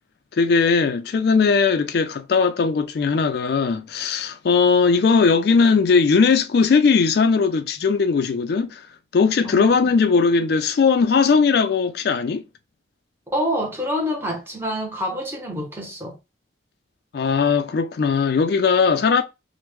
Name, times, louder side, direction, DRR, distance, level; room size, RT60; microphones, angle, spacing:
voice 1, 0.3-8.9 9.1-12.4 17.1-19.2, left 5 dB, 55° left, 0.3 m, -19 dB
voice 2, 9.4-10.0 13.3-16.2, equal, 10° right, 0.7 m, -27 dB
3.0 x 2.1 x 3.3 m
head